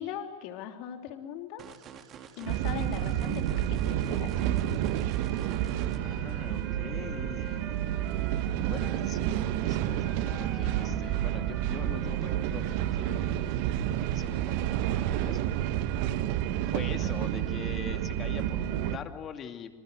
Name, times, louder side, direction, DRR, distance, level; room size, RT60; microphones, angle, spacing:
voice 1, 0.0-1.6 2.4-4.8, left 8 dB, 45° left, 5 dB, 3.2 m, -40 dB
sound 1, 1.6-6.0, right 8 dB, 30° right, 2.5 m, -48 dB
sound 2, 2.5-19.0, right 12 dB, 45° right, 1.4 m, -30 dB
Wind instrument woodwind instrument, 5.0-9.1 10.0-13.4, right 2 dB, 5° right, 5.8 m, -49 dB
voice 2, 6.0-7.9 8.6-15.8 16.7-19.7, left 7 dB, 25° left, 7 dB, 2.5 m, -43 dB
27.5 x 26.0 x 7.8 m, 1.4 s
figure-of-eight pair, 90°, 0 cm